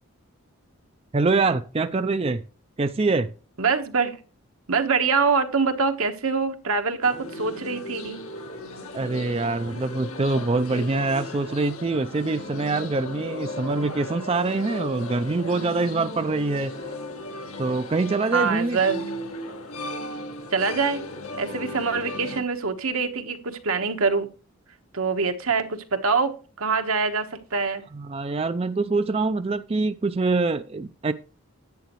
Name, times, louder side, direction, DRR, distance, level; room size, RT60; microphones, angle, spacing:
voice 1, 1.1-2.4 2.8-3.3 8.9-16.7 17.6-18.8 27.9-31.1, right 3 dB, 25° right, 11 dB, 0.4 m, -24 dB
voice 2, 3.6-4.2 4.7-8.2 18.3-19.1 20.5-21.1 21.4-24.3 24.9-27.8, right 5 dB, 80° right, 6 dB, 1.3 m, -24 dB
sound 1, 7.0-22.4, left 1 dB, 85° left, 1.7 m, -36 dB
10.5 x 9.1 x 3.1 m, 0.36 s
head